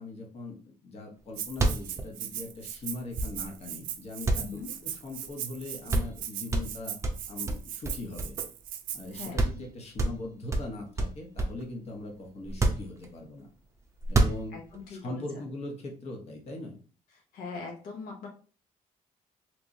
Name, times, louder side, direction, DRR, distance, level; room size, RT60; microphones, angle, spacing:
voice 1, 0.0-7.0 7.3-8.4 8.9-13.5 14.1-14.5 14.9-16.8, left 2 dB, 45° left, 0 dB, 1.1 m, -40 dB
sound 1, 1.2-1.3 1.5-3.7 4.2-5.3 5.6-5.7 5.9-6.2 6.5-8.7 9.0-9.1 9.4-9.7 10.0-11.7 12.4-13.4 14.0-14.8, right 2 dB, 20° right, 0.5 m, -29 dB
Rattle (instrument), 1.4-9.3, right 11 dB, 90° right, 0.4 m, -39 dB
voice 2, 4.3-4.7 9.1-9.4 14.5-15.2 17.3-18.3, left 4 dB, 85° left, 1 dB, 0.8 m, -40 dB
3.4 x 3.1 x 2.6 m, 0.39 s
cardioid pair, 115°, 14 cm